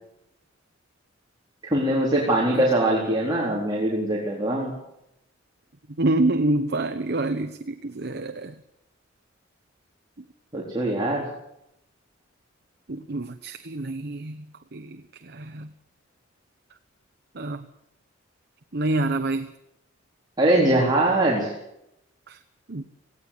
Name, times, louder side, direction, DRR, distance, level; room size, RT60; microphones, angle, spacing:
voice 1, 1.6-4.7 10.5-11.3 20.4-21.5, right 1 dB, 20° right, -4 dB, 4.2 m, -22 dB
voice 2, 6.0-8.5 12.9-14.4 14.7-15.7 17.3-17.6 18.7-19.5 22.3-22.4 22.7-22.8, right 2 dB, 55° right, 8 dB, 1.0 m, -27 dB
19.0 x 17.0 x 8.7 m, 0.84 s
head